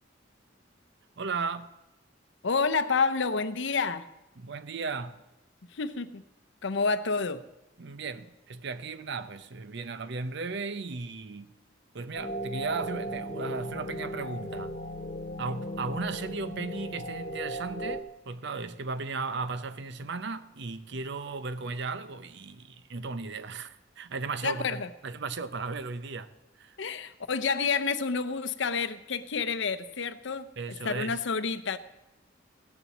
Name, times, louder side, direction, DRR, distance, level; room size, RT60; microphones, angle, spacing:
voice 1, 1.2-1.7 4.4-5.2 7.8-11.5 11.9-14.8 15.4-26.3 26.6-26.8 30.6-31.2, right 4 dB, 65° right, 0.7 m, -36 dB
voice 2, 2.4-4.0 5.7-6.2 6.6-7.4 24.4-24.9 26.8-30.5 30.8-31.8, left 4 dB, 65° left, 0.7 m, -29 dB
sound 1, 12.1-18.0, equal, 40° left, 1.0 m, -36 dB
15.5 x 7.1 x 7.2 m
head